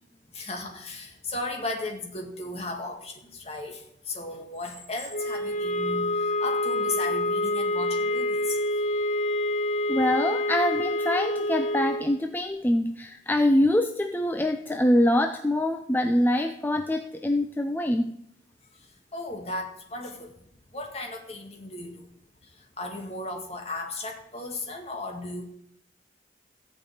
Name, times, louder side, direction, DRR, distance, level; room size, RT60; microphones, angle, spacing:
voice 1, 0.3-8.6 19.1-20.3 20.7-22.1 22.6-25.5, left 2 dB, 35° left, 3 dB, 2.0 m, -35 dB
sound 1, 5.1-12.1, left 1 dB, 80° left, 2.9 m, -27 dB
voice 2, 9.9-18.1, left 1 dB, 10° left, 7 dB, 0.5 m, -24 dB
14.5 x 5.4 x 8.9 m, 0.74 s
head